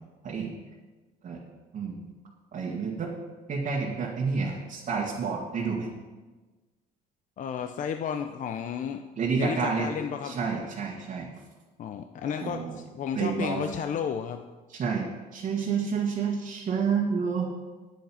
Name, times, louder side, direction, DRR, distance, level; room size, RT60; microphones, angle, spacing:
voice 1, 2.5-3.1 3.5-5.9 9.2-9.9 10.2-11.3 12.2-12.8 13.1-13.6 14.7-17.6, right 5 dB, 50° right, -4 dB, 1.8 m, -29 dB
voice 2, 7.4-9.0 9.3-10.4 11.8-14.4, left 8 dB, 50° left, 7 dB, 0.6 m, -32 dB
9.3 x 9.2 x 5.6 m, 1.3 s
cardioid pair, 110°, 17 cm